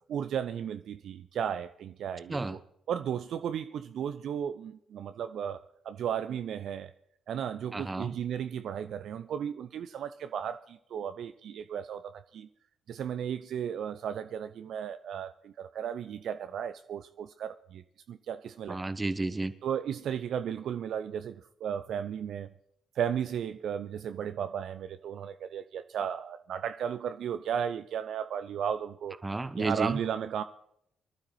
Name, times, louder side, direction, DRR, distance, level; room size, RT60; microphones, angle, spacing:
voice 1, 0.1-2.6 2.9-6.9 7.3-12.5 12.9-18.8 19.6-22.5 23.0-29.2 29.6-30.4, right 8 dB, 60° right, 0.4 m, -35 dB
voice 2, 7.7-8.1 18.7-19.5 29.2-30.0, right 2 dB, 25° right, 0.9 m, -32 dB
24.0 x 12.0 x 3.1 m
figure-of-eight pair, 40°, 0 cm